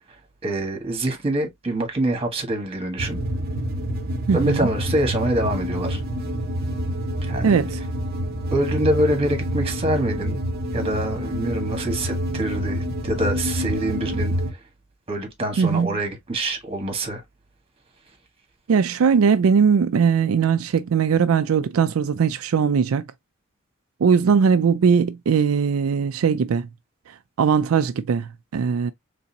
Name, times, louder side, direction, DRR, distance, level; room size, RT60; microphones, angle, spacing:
voice 1, 0.4-3.2 4.3-6.0 7.2-7.6 8.5-10.4 10.7-14.3 15.1-17.2, right 1 dB, 30° right, 1.5 m, -25 dB
sound 1, 3.0-14.5, equal, 45° right, 0.8 m, -27 dB
voice 2, 4.3-4.7 7.4-7.8 15.6-16.0 18.7-23.1 24.0-26.7 27.4-28.9, right 6 dB, 80° right, 0.4 m, -20 dB
4.0 x 3.3 x 2.7 m
head